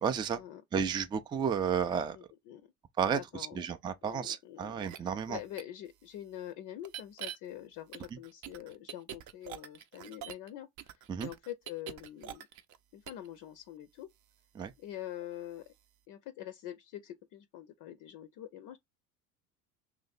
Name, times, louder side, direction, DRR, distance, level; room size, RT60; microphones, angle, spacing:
voice 1, 0.0-0.4 0.7-2.2 3.0-5.4 11.1-11.3 14.6-14.7, right 7 dB, 10° right, 0.3 m, -32 dB
voice 2, 2.1-2.6 3.1-3.7 4.0-10.7 11.2-12.5 12.9-14.1 14.8-15.6 16.1-18.8, left 12 dB, 50° left, 0.5 m, -45 dB
sound 1, 4.8-5.0 5.6-5.7 6.8-7.4 7.9-10.5 10.8-12.8 13.1-13.3, right 11 dB, 45° right, 0.6 m, -44 dB
3.0 x 2.6 x 4.0 m
hypercardioid pair, 80°, 42 cm